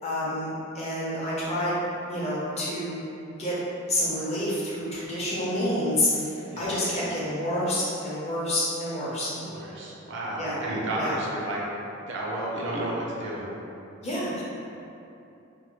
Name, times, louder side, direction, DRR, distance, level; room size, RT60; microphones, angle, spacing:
voice 1, 0.0-1.8 2.1-3.0 3.4-3.5 3.9-9.3 10.4-10.6 11.0-11.1 14.0-14.4, left 1 dB, 30° left, -8 dB, 0.6 m, -28 dB
voice 2, 9.4-11.6 12.0-13.4, right 1 dB, 60° right, -4 dB, 0.5 m, -32 dB
2.6 x 2.2 x 2.9 m, 2.8 s
head